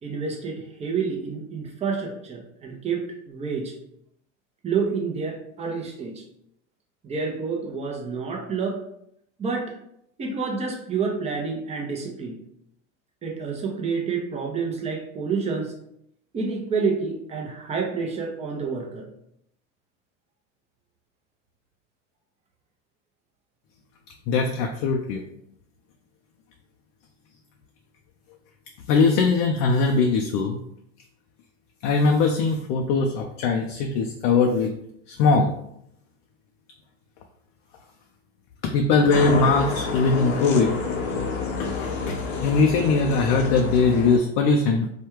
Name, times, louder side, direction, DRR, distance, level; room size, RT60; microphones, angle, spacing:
voice 1, 0.0-3.7 4.6-6.2 7.0-8.8 9.4-9.7 10.2-12.4 13.2-15.8 16.3-19.1, right 5 dB, 15° right, 1 dB, 0.6 m, -28 dB
voice 2, 24.3-25.2 28.9-30.6 31.8-34.7 35.1-35.5 38.6-40.7 41.6-42.1 42.4-44.9, left 4 dB, 55° left, 3 dB, 0.5 m, -21 dB
sound 1, 39.1-44.2, left 4 dB, 85° left, 0.8 m, -28 dB
3.2 x 2.3 x 3.0 m, 0.74 s
supercardioid pair, 115°, 37 cm